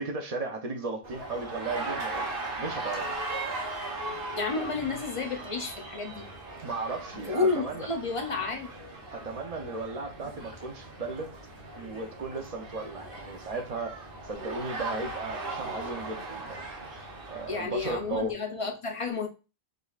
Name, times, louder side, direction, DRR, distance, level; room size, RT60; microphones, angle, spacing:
voice 1, 0.0-2.3 2.6-3.1 6.6-7.9 9.1-11.3 11.8-16.7 17.3-18.3, right 3 dB, 40° right, 0.6 m, -35 dB
sound 1, 1.0-18.3, equal, 25° right, 1.2 m, -50 dB
sound 2, 1.0-17.6, right 2 dB, 60° right, 1.1 m, -38 dB
voice 2, 4.4-6.3 7.1-8.7 17.5-19.3, left 4 dB, 40° left, 0.5 m, -31 dB
5.1 x 2.5 x 2.3 m
omnidirectional pair, 1.1 m